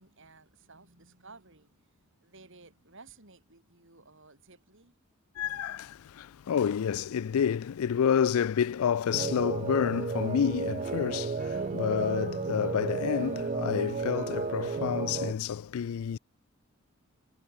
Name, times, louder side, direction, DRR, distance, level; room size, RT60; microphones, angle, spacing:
voice 1, 0.0-4.9, right 3 dB, 60° right, 5.9 m, -55 dB
voice 2, 5.4-16.2, left 8 dB, 75° left, 0.4 m, -29 dB
sound 1, 9.1-15.3, right 4 dB, 35° right, 0.5 m, -33 dB
head